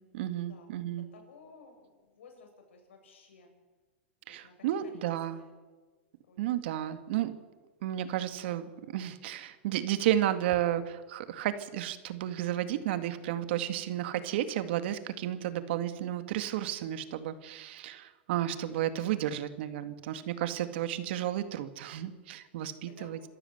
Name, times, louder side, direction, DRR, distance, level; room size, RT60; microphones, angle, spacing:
voice 1, 0.1-1.1 4.3-5.4 6.4-7.3 7.8-23.3, right 12 dB, 65° right, 10 dB, 2.1 m, -32 dB
voice 2, 1.1-3.5 4.3-5.0 5.4-5.5 6.3-6.9 22.9-23.3, left 4 dB, 85° left, 4 dB, 7.5 m, -55 dB
27.0 x 14.0 x 8.0 m, 1.3 s
hypercardioid pair, 130°, 6 cm